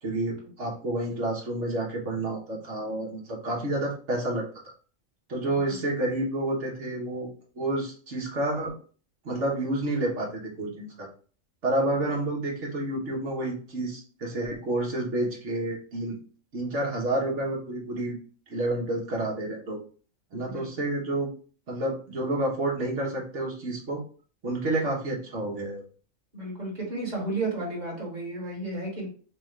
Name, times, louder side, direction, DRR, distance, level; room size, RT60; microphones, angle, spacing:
voice 1, 0.0-4.4 5.3-7.3 7.5-8.7 9.2-11.1 11.6-16.2 16.5-18.1 18.5-19.8 20.3-21.3 21.7-24.0 24.4-25.8, right 1 dB, 60° right, -2 dB, 1.7 m, -29 dB
voice 2, 5.4-5.8 20.5-20.7 26.3-29.1, right 2 dB, 30° right, -4 dB, 1.9 m, -33 dB
5.2 x 2.5 x 3.3 m, 0.40 s
omnidirectional pair, 1.4 m